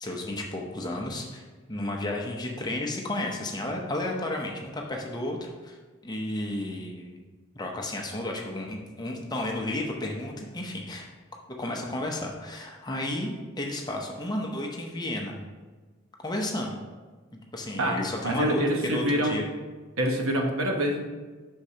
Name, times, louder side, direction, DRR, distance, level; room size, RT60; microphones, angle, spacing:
voice 1, 0.0-5.8 6.0-7.2 7.5-11.1 11.6-15.4 16.2-16.8 17.5-19.5, left 1 dB, 20° left, 1 dB, 0.7 m, -32 dB
voice 2, 18.2-19.3 20.0-21.0, right 1 dB, 70° right, 2 dB, 1.0 m, -25 dB
8.2 x 6.3 x 2.8 m, 1.3 s
head